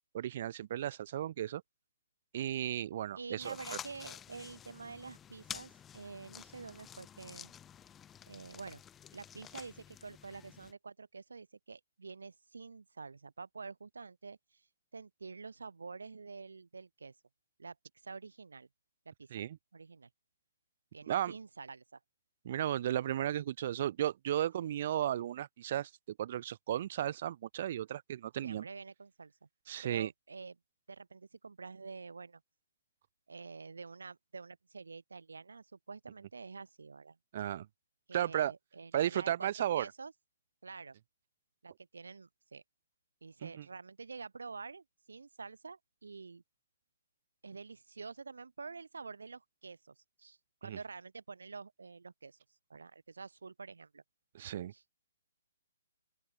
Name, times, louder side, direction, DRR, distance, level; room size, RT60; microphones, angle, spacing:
voice 1, 0.1-1.6 2.3-3.6 19.3-19.6 21.1-21.3 22.5-25.9 26.2-28.7 29.7-30.1 37.3-37.7 38.1-38.5 38.9-39.9 43.4-43.6 50.6-50.8 54.3-54.7, right 11 dB, 50° right, 3.9 m, -34 dB
voice 2, 3.2-7.5 8.3-8.8 9.1-14.7 14.9-17.2 17.6-17.8 18.0-18.7 19.1-19.3 19.7-20.1 20.9-22.0 24.6-24.8 28.4-29.5 29.8-30.6 30.9-32.4 33.3-37.2 38.1-40.1 40.6-41.0 41.6-42.6 43.2-46.4 47.4-52.4 52.7-54.0 54.7-54.9, right 4 dB, 85° right, 7.0 m, -48 dB
sound 1, 3.4-10.7, left 9 dB, 15° left, 4.2 m, -50 dB
open air
hypercardioid pair, 145°, 0 cm